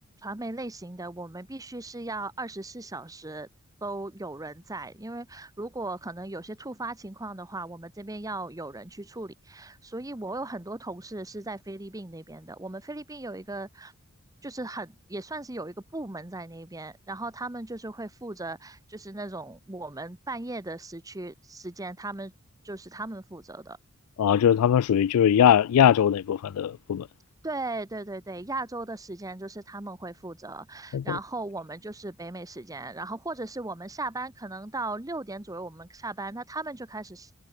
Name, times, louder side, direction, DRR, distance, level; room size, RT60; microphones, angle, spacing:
voice 1, 0.2-3.5 3.8-13.9 14.4-22.3 22.6-23.8 27.4-37.4, right 2 dB, 15° right, 1.1 m, -37 dB
voice 2, 24.2-27.1 30.9-31.2, left 9 dB, 85° left, 0.3 m, -21 dB
head